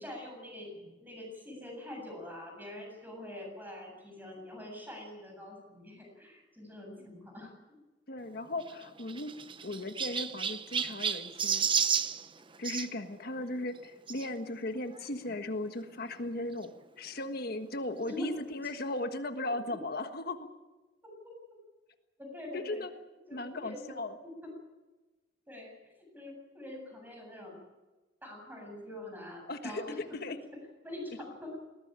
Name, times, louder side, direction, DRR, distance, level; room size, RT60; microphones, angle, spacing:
voice 1, 0.0-7.8 18.1-18.3 22.2-22.8 23.3-24.0 24.2-24.3 25.5-25.7 26.0-27.6 28.2-30.2 30.8-31.6, left 1 dB, 10° right, 1 dB, 8.0 m, -44 dB
voice 2, 8.1-9.4 9.6-11.7 12.6-20.5 22.5-22.9 23.3-24.2 29.5-30.4, left 2 dB, 55° left, 7 dB, 1.5 m, -37 dB
Chirp tweet, 8.6-12.9 14.1-14.3 15.0-15.1 15.3-15.4 16.6-16.7, right 7 dB, 25° right, 0.8 m, -32 dB
21.0 x 18.5 x 9.0 m, 1.2 s
head